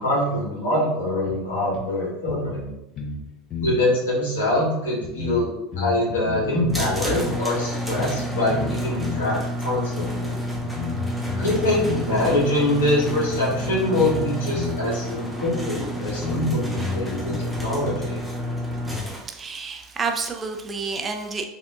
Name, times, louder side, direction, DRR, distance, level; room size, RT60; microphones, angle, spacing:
voice 1, 0.0-2.6 3.6-10.3 11.4-18.2, left 1 dB, 75° left, -6 dB, 1.3 m, -24 dB
sound 1, 1.3-1.4 1.7-1.8 2.3-3.2 3.5-3.8 4.5-4.6 5.0-6.8 7.3-7.4 8.0-8.2 8.5-9.3 10.0-10.1 10.6-12.4 12.8-12.9 13.3-14.3 14.5-14.8 15.5-15.6 16.1-17.4, left 4 dB, 45° left, 0.8 m, -31 dB
sound 2, 6.7-19.2, equal, 5° right, 0.8 m, -29 dB
voice 2, 19.0-21.4, right 4 dB, 30° right, 3 dB, 0.4 m, -30 dB
3.5 x 2.6 x 2.4 m, 0.93 s
hypercardioid pair, 80°, 0 cm